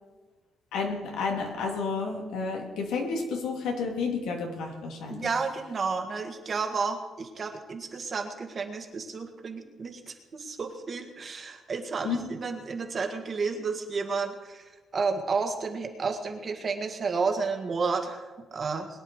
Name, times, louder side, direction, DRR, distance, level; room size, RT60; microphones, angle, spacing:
voice 1, 0.7-5.3 12.0-12.2, left 4 dB, 85° left, 1 dB, 3.3 m, -31 dB
voice 2, 5.1-14.7 14.9-18.9, right 4 dB, 35° right, 4 dB, 1.8 m, -31 dB
22.0 x 9.9 x 4.9 m, 1.3 s
cardioid pair, 140°, 0 cm